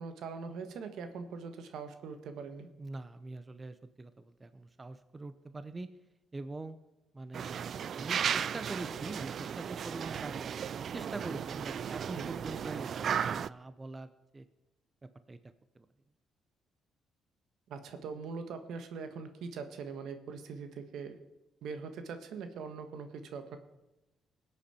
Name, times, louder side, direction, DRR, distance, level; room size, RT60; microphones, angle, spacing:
voice 1, 0.0-2.7 12.1-12.2 17.7-21.2 21.6-23.6, right 5 dB, 75° right, 8 dB, 1.4 m, -42 dB
voice 2, 2.8-5.9 6.3-6.8 7.1-10.5 10.9-14.5 15.0-15.4 15.7-15.9, right 2 dB, 25° right, 11 dB, 0.7 m, -44 dB
sound 1, 7.3-13.5, right 8 dB, 60° right, 0.3 m, -35 dB
20.0 x 8.2 x 4.4 m, 1.0 s
cardioid pair, 90°, 0 cm